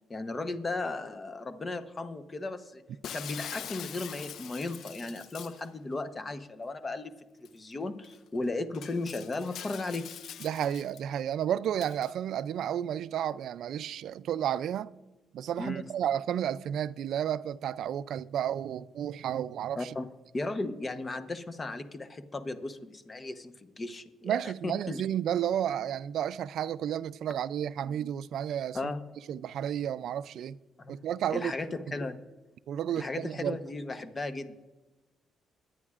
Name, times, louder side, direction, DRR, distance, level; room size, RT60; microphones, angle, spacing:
voice 1, 0.1-2.8 3.1-7.1 7.4-10.1 15.6-15.8 19.8-20.1 20.3-25.0 28.7-29.0 30.8-31.0 31.3-32.2 33.0-34.5, left 2 dB, 30° left, 0.9 m, -36 dB
Shatter, 3.0-5.7 7.5-7.6 8.0-8.2 8.7-11.0 11.8-12.1, left 9 dB, 70° left, 0.3 m, -43 dB
voice 2, 10.4-14.9 15.3-19.9 24.2-28.9 29.3-30.6 30.9-31.5 31.9-32.0 32.7-33.6, right 10 dB, 75° right, 0.3 m, -32 dB
21.5 x 9.4 x 2.5 m
cardioid pair, 90°, 0 cm